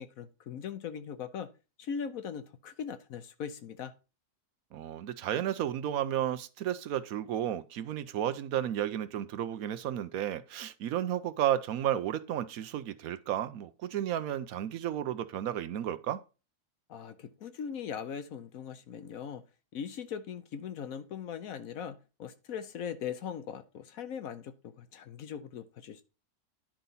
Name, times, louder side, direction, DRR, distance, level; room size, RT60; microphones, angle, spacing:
voice 1, 0.0-1.5 1.8-3.9 16.9-19.4 19.7-26.0, left 7 dB, 70° left, 1.2 m, -40 dB
voice 2, 4.7-16.2, right 11 dB, 70° right, 1.0 m, -32 dB
10.5 x 4.0 x 5.5 m
omnidirectional pair, 1.6 m